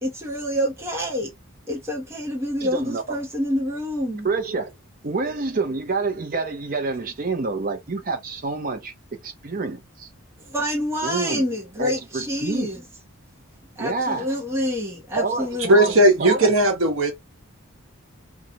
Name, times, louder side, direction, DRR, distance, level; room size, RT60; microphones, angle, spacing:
voice 1, 0.0-1.3 1.7-4.3 10.4-12.8 13.8-16.0, equal, 15° right, 0.9 m, -27 dB
voice 2, 2.6-3.0 4.2-4.7 5.0-8.9 9.2-10.1 11.0-11.4 11.8-12.7 13.8-14.3 15.2-15.9 16.2-16.5, right 3 dB, 40° right, 0.7 m, -27 dB
voice 3, 15.7-17.1, right 1 dB, 70° right, 1.0 m, -17 dB
2.9 x 2.3 x 2.4 m
head